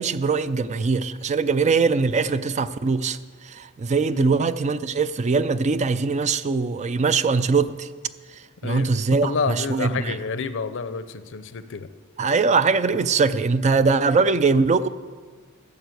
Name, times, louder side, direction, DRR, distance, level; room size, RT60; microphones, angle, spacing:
voice 1, 0.0-3.2 3.4-7.9 8.6-10.2 12.2-14.9, right 4 dB, 35° right, 14 dB, 0.4 m, -21 dB
voice 2, 9.2-11.9, left 5 dB, 60° left, 12 dB, 0.6 m, -29 dB
12.5 x 6.9 x 7.9 m, 1.6 s
head